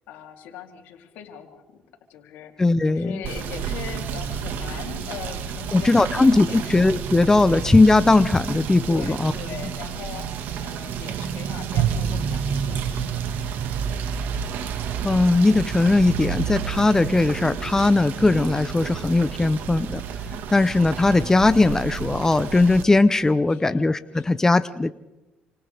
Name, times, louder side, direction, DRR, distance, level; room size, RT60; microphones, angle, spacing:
voice 1, 0.1-1.6 2.1-6.8 8.9-10.3 10.6-13.5 23.5-24.5, left 9 dB, 85° left, 2 dB, 3.4 m, -40 dB
voice 2, 2.6-3.2 5.7-9.3 15.0-20.0 20.5-24.9, left 2 dB, 15° left, 12 dB, 0.7 m, -19 dB
Rain / Motor vehicle (road), 3.2-22.8, right 7 dB, 75° right, 1.8 m, -30 dB
28.5 x 26.5 x 3.5 m, 1.0 s
cardioid pair, 95°, 3 cm